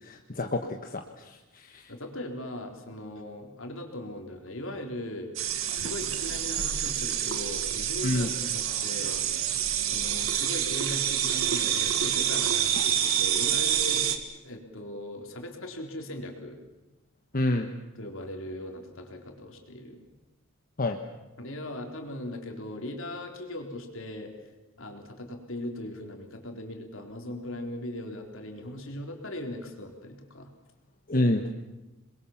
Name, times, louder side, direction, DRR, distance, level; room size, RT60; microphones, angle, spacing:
voice 1, 0.0-1.9 8.0-8.3 17.3-17.7 20.8-21.0 31.1-31.4, left 1 dB, 40° left, 4 dB, 1.3 m, -28 dB
voice 2, 1.9-5.3 5.7-9.2 9.8-14.1 14.4-16.6 18.0-20.1 21.4-24.3 24.8-30.5, left 1 dB, 65° left, 3 dB, 3.8 m, -39 dB
sound 1, 5.4-14.2, right 9 dB, 75° right, 1.9 m, -27 dB
27.5 x 22.0 x 7.2 m, 1.0 s
head